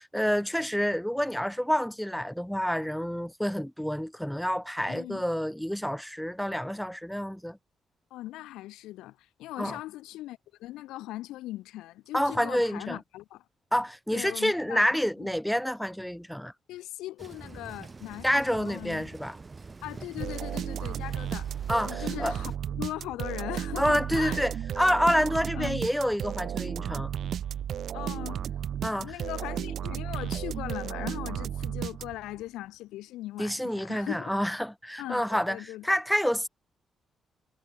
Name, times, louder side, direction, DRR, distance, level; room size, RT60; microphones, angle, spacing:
voice 1, 0.0-7.6 9.6-9.8 12.1-13.0 13.7-16.5 18.2-19.4 21.7-22.4 23.8-27.1 28.8-29.1 33.4-36.5, equal, 5° left, 1.6 m, -28 dB
voice 2, 4.9-5.2 8.1-13.4 14.1-14.9 16.7-19.1 19.8-21.5 21.8-24.5 25.5-25.8 27.9-28.4 28.8-34.3 35.0-35.9, left 16 dB, 85° left, 2.4 m, -39 dB
sound 1, 17.2-22.6, right 4 dB, 35° right, 5.1 m, -46 dB
sound 2, 20.2-32.4, right 9 dB, 70° right, 2.3 m, -34 dB
supercardioid pair, 55°, 0 cm